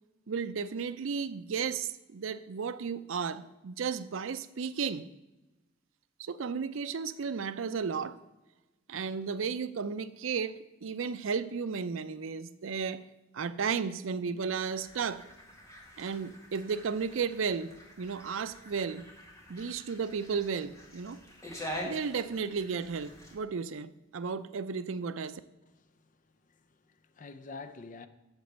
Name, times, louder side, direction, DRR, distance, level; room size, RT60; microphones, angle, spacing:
voice 1, 0.3-5.1 6.2-8.2 8.9-13.0 13.3-15.2 16.0-19.0 19.5-21.2 21.8-25.4, right 5 dB, 80° right, 0.5 m, -34 dB
sound 1, 14.7-23.4, equal, 15° left, 1.8 m, -46 dB
voice 2, 25.7-28.1, left 3 dB, 40° left, 0.6 m, -48 dB
8.1 x 7.0 x 6.6 m
head